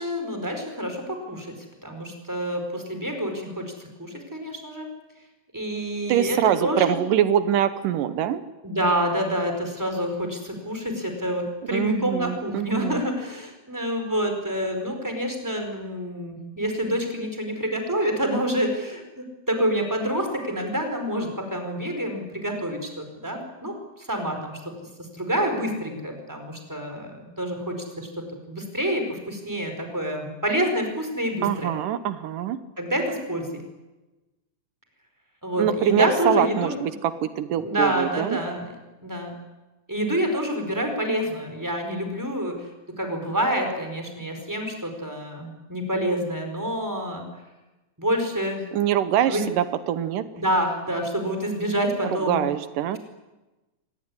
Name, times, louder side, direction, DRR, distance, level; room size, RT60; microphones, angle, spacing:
voice 1, 0.0-1.5 1.8-4.9 5.5-7.0 8.6-24.7 25.0-31.7 32.8-33.6 35.4-36.8 37.6-39.3 39.9-47.3 48.0-48.7 49.3-49.5 50.4-52.4, equal, 5° right, 5 dB, 4.8 m, -27 dB
voice 2, 6.1-8.4 11.7-13.0 31.4-32.6 35.6-38.4 48.7-50.2 52.3-53.0, right 10 dB, 85° right, 12 dB, 2.7 m, -24 dB
26.0 x 18.5 x 9.7 m, 1.1 s
omnidirectional pair, 3.7 m